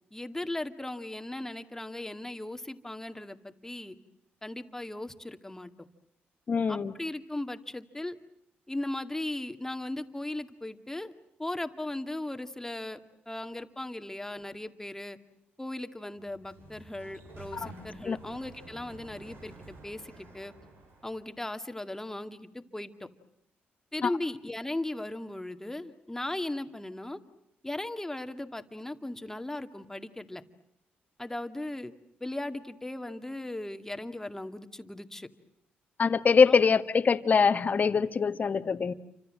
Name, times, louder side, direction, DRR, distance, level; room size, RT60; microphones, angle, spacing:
voice 1, 0.1-4.0 4.4-5.9 6.7-8.2 8.7-11.1 11.4-13.0 13.3-15.2 15.6-20.5 21.0-23.1 23.9-27.2 27.6-30.4 31.2-31.9 32.2-35.3 36.5-36.6, left 1 dB, 10° left, 2.2 m, -37 dB
voice 2, 6.5-6.9 18.0-18.2 24.0-24.1 36.0-38.9, left 5 dB, 45° left, 1.6 m, -23 dB
Sliding door, 16.2-21.3, right 2 dB, 70° right, 6.9 m, -50 dB
29.5 x 25.5 x 7.7 m
cardioid pair, 85°, 4 cm